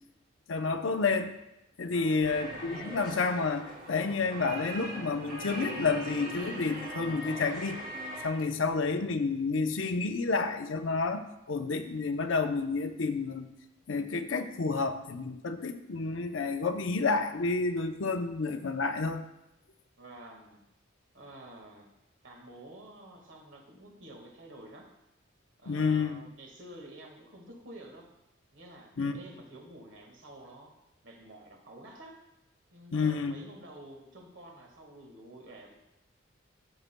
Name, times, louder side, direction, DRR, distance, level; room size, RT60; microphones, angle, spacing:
voice 1, 0.5-1.4 1.8-7.8 8.2-13.5 13.9-19.2 25.7-26.2 29.0-29.2 32.9-33.4, left 4 dB, 70° left, 7 dB, 0.6 m, -30 dB
voice 2, 1.9-2.3 20.0-20.6 21.1-21.9 22.2-24.9 25.6-28.1 28.5-30.7 31.0-32.2 32.7-35.7, right 1 dB, 65° right, 1 dB, 1.6 m, -50 dB
sound 1, 2.2-8.3, right 1 dB, 45° right, 2.6 m, -40 dB
13.0 x 7.2 x 2.2 m, 0.92 s
head